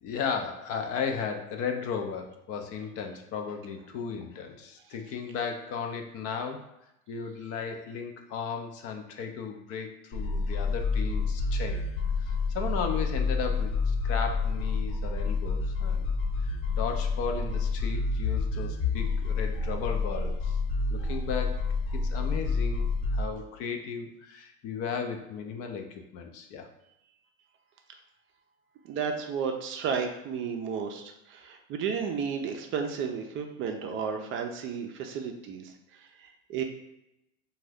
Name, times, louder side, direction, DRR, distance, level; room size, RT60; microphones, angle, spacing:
voice 1, 0.0-6.7 7.1-11.8 12.2-16.1 16.7-20.6 20.9-21.6 21.9-26.7, left 6 dB, 45° left, 4 dB, 0.5 m, -35 dB
sound 1, 10.1-23.2, left 4 dB, 60° left, 1.2 m, -29 dB
voice 2, 28.8-36.6, right 6 dB, 40° right, 4 dB, 0.4 m, -33 dB
2.6 x 2.3 x 3.4 m, 0.87 s
supercardioid pair, 110°, 33 cm